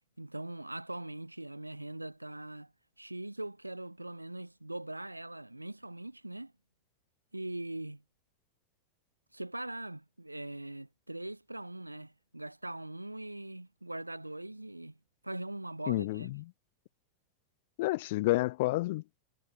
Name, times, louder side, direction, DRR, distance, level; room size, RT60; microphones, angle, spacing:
voice 1, 0.2-2.7 3.0-6.5 7.3-8.0 9.3-15.0 15.2-16.3, right 1 dB, 85° right, 1.7 m, -41 dB
voice 2, 15.9-16.4 17.8-19.2, left 19 dB, 50° left, 0.3 m, -30 dB
figure-of-eight pair, 90°, 0 cm